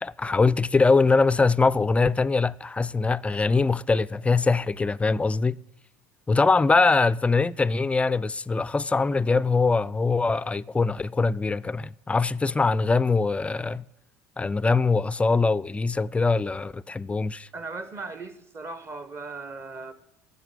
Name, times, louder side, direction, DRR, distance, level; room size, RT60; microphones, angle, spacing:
voice 1, 0.0-5.6 6.3-13.8 14.4-17.5, left 4 dB, 15° left, 0.3 m, -22 dB
voice 2, 17.5-19.9, right 3 dB, 35° right, 1.0 m, -37 dB
9.1 x 6.7 x 7.5 m
hypercardioid pair, 70°, 8 cm